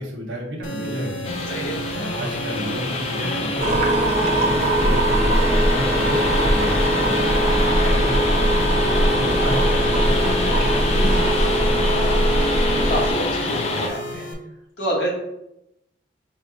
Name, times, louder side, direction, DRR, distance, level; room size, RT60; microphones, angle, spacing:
voice 1, 0.0-1.4 1.9-12.2, equal, 75° right, -1 dB, 1.0 m, -32 dB
sound 1, 0.6-14.3, equal, 90° left, 0.6 m, -32 dB
sound 2, 1.2-13.9, left 3 dB, 35° left, 0.4 m, -26 dB
sound 3, 3.6-13.1, right 1 dB, 35° right, 0.6 m, -20 dB
voice 2, 12.9-14.3 14.8-15.1, right 1 dB, 60° left, -3 dB, 1.2 m, -27 dB
4.5 x 2.1 x 3.8 m, 0.84 s
head